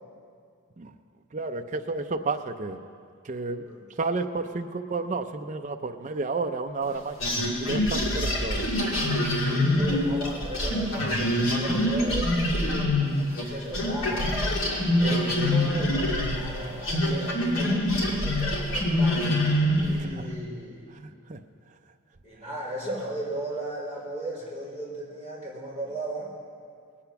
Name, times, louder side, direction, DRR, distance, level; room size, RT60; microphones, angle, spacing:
voice 1, 1.3-2.8 3.2-3.6 4.0-7.3 7.6-8.8 20.0-20.3 20.9-21.4, right 3 dB, 35° right, 5 dB, 0.5 m, -31 dB
sound 1, 7.2-13.5 13.7-20.0, left 1 dB, 65° left, 2.4 m, -25 dB
voice 2, 9.7-12.5 13.3-14.4 15.0-19.3 19.8-20.8 22.2-26.3, right 1 dB, 30° left, -7 dB, 3.8 m, -36 dB
19.5 x 8.6 x 5.8 m, 2.2 s
head